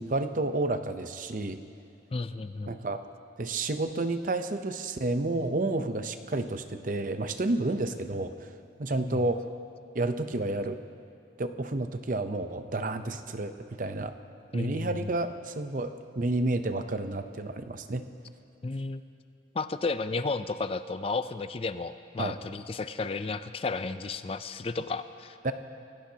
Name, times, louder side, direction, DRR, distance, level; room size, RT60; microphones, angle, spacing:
voice 1, 0.0-1.6 2.7-3.0 3.4-8.3 8.8-9.5 9.9-10.8 11.4-14.1 14.5-18.1 22.2-22.3 25.4-25.5, right 2 dB, 45° right, 9 dB, 0.7 m, -30 dB
voice 2, 2.1-2.8 9.0-9.2 14.5-15.1 18.6-19.0 19.5-25.4, left 3 dB, 30° left, 11 dB, 0.4 m, -33 dB
26.5 x 16.5 x 2.8 m, 2.6 s
head